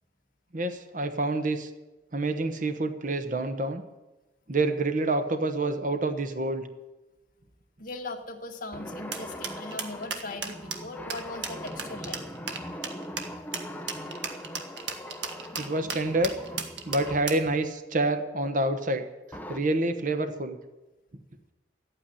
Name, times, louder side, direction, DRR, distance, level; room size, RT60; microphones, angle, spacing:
voice 1, 0.5-1.7 2.1-3.8 4.5-6.7 15.6-16.3 16.9-19.0 19.5-20.6, right 2 dB, 45° right, 8 dB, 1.1 m, -27 dB
voice 2, 7.8-12.2, left 2 dB, 50° left, 2 dB, 2.0 m, -39 dB
sound 1, 8.7-17.4 19.3-19.6, left 1 dB, 10° left, 0.8 m, -41 dB
sound 2, 9.1-17.5, right 6 dB, 80° right, 1.6 m, -35 dB
13.5 x 8.9 x 9.9 m, 1.1 s
head